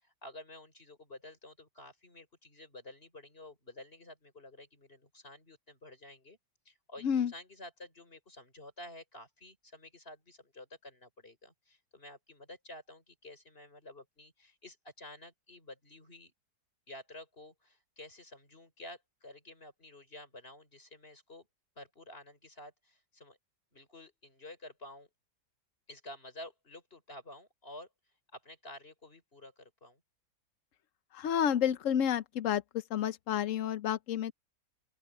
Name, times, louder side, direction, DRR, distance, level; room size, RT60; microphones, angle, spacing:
voice 1, 0.0-6.4 6.7-16.3 16.9-21.5 21.8-23.4 23.7-25.1 25.9-27.9 28.3-30.0, left 1 dB, 30° left, 5.7 m, -51 dB
voice 2, 31.1-34.3, left 9 dB, 60° left, 0.8 m, -30 dB
open air
omnidirectional pair, 2.0 m